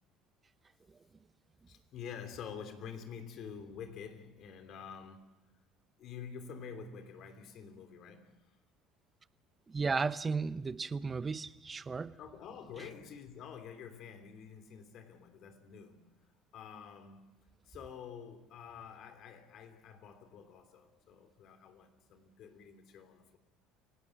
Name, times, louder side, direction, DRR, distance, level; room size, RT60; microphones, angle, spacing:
voice 1, 1.7-5.4 6.0-8.6 12.2-17.3 17.6-23.4, left 7 dB, 55° left, 3.3 m, -48 dB
voice 2, 9.7-12.1, right 4 dB, 25° right, 0.9 m, -34 dB
29.5 x 18.0 x 6.2 m
supercardioid pair, 85°, 0 cm